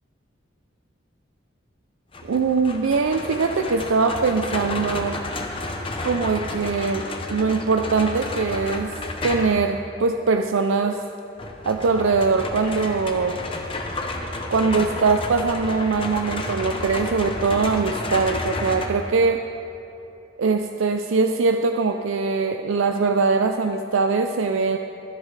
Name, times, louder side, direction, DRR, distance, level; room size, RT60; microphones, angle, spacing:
sound 1, 2.1-9.7 11.4-18.9, left 2 dB, 25° left, 0.8 m, -31 dB
voice 1, 2.2-5.2 6.0-9.0 9.2-11.0 11.7-13.4 14.5-19.4 20.4-24.8, right 4 dB, 80° right, 5 dB, 0.4 m, -22 dB
23.0 x 8.1 x 3.3 m, 2.7 s
head